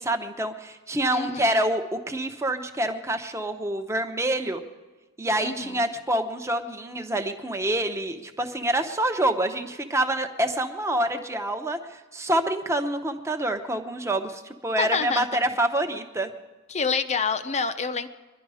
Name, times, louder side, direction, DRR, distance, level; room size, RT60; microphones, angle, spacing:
voice 1, 0.0-4.6 5.2-16.3, right 1 dB, 15° right, 5 dB, 0.9 m, -27 dB
voice 2, 1.1-1.6 5.4-5.9 14.8-15.3 16.7-18.1, left 5 dB, 30° left, 10 dB, 0.7 m, -27 dB
23.0 x 11.5 x 4.9 m, 1.2 s
head